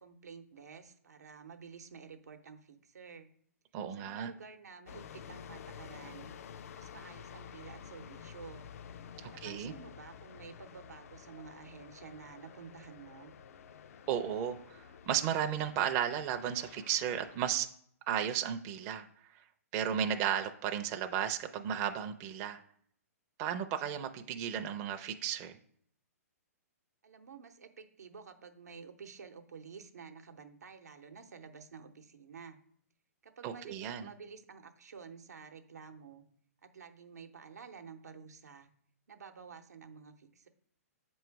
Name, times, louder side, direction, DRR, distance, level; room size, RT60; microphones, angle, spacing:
voice 1, 0.0-3.3 4.0-6.3 6.7-8.7 9.3-13.3 27.0-32.6 33.2-36.2 36.6-38.7 39.1-40.5, right 6 dB, 90° right, 6 dB, 0.8 m, -51 dB
voice 2, 3.7-4.3 9.2-9.7 14.1-17.7 18.1-19.1 19.7-22.6 23.4-25.5 33.4-34.1, right 9 dB, 30° right, 6 dB, 0.4 m, -34 dB
sound 1, 4.9-17.7, left 7 dB, 65° left, 0.4 m, -51 dB
7.4 x 3.1 x 4.5 m, 0.64 s
hypercardioid pair, 140°, 9 cm